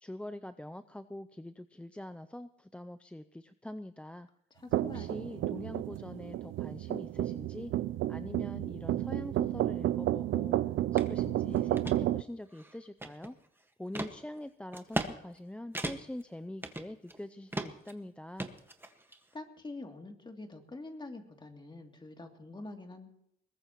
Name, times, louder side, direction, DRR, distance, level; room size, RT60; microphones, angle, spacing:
voice 1, 0.0-4.3 4.9-7.7 8.1-10.6 10.9-13.4 13.8-18.5, left 1 dB, 5° left, 11 dB, 0.5 m, -44 dB
voice 2, 4.5-5.5 19.3-23.1, left 2 dB, 25° left, 3 dB, 2.8 m, -46 dB
sound 1, 4.7-12.2, right 14 dB, 80° right, 0.5 m, -31 dB
sound 2, 11.0-11.1 11.5-12.0 12.5-13.4 13.9-14.1 14.7-15.1 15.4-15.5 15.7-16.2 16.6-17.2 17.5-17.9 18.4-19.2, right 2 dB, 10° right, 1.6 m, -37 dB
22.0 x 19.0 x 3.1 m, 0.75 s
cardioid pair, 90°, 20 cm